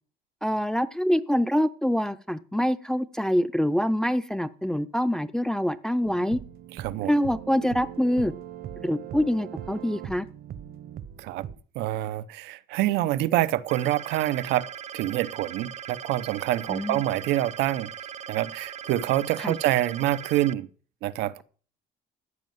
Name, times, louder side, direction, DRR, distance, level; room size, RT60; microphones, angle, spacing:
voice 1, 0.4-6.4 7.0-8.3 8.8-10.3 16.7-17.0 19.4-19.5, equal, 5° left, 0.6 m, -25 dB
sound 1, 6.0-11.6, right 10 dB, 65° right, 1.1 m, -40 dB
voice 2, 6.8-7.1 11.2-11.4 11.7-14.7 14.9-17.9 18.3-20.7 21.0-21.4, right 14 dB, 90° right, 0.8 m, -26 dB
sound 2, 13.7-20.5, right 9 dB, 40° right, 0.7 m, -40 dB
14.5 x 5.3 x 9.3 m
cardioid pair, 110°, 17 cm